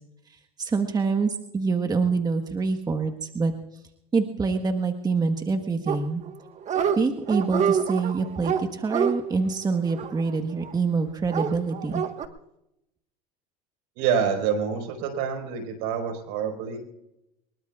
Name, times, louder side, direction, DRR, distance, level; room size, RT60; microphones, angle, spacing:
voice 1, 0.3-3.8 4.1-6.2 7.0-12.0, right 4 dB, 20° right, 6 dB, 1.4 m, -26 dB
Dog, 5.9-6.4 6.6-7.0 7.3-10.7 11.3-12.3, right 7 dB, 40° right, 1.4 m, -27 dB
voice 2, 14.0-16.8, right 7 dB, 70° right, 5 dB, 4.8 m, -27 dB
24.5 x 21.5 x 2.4 m, 0.86 s
supercardioid pair, 100°, 19 cm